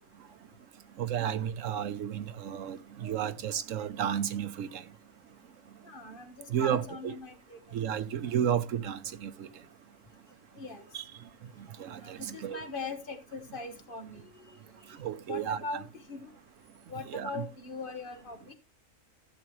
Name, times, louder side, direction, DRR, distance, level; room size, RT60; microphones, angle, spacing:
voice 1, 1.0-4.8 6.5-7.2 7.7-9.5 10.9-11.0 11.8-12.6 15.0-15.7 17.0-17.4, right 9 dB, 70° right, 1.1 m, -32 dB
voice 2, 5.9-7.6 10.6-10.8 12.0-14.3 15.3-16.3 16.9-18.5, left 4 dB, 40° left, 1.6 m, -41 dB
15.0 x 7.1 x 3.1 m
omnidirectional pair, 1.4 m